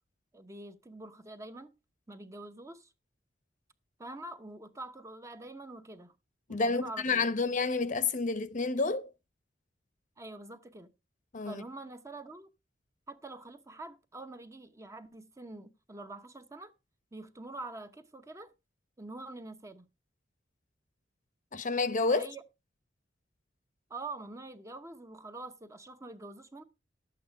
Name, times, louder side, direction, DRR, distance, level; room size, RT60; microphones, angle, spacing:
voice 1, 0.3-1.7 2.1-2.9 4.0-6.1 6.5-7.3 10.2-10.9 11.4-12.5 13.1-16.7 17.1-18.5 19.0-19.9 22.1-22.4 23.9-26.6, right 2 dB, 15° right, 0.8 m, -45 dB
voice 2, 6.5-9.1 11.3-11.6 21.5-22.2, left 3 dB, 45° left, 0.8 m, -29 dB
11.5 x 8.5 x 4.6 m
head